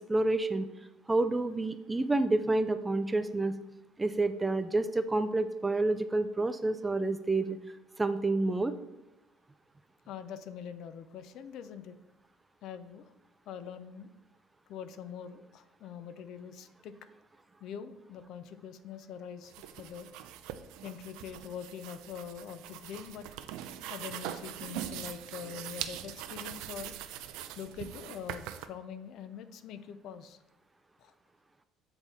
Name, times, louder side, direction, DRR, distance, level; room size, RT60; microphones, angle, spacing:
voice 1, 0.1-0.7 1.1-3.5 4.0-7.6 8.0-8.7, right 2 dB, 10° right, 11 dB, 0.3 m, -29 dB
voice 2, 10.1-12.0 12.6-13.0 13.5-14.1 14.7-16.9 17.6-20.1 20.8-23.3 23.9-26.9 27.6-30.4 31.0-31.1, left 7 dB, 60° left, 12 dB, 0.5 m, -44 dB
sound 1, 19.4-28.7, right 11 dB, 80° right, 0.4 m, -42 dB
8.0 x 3.5 x 4.1 m, 1.0 s
cardioid pair, 145°, 0 cm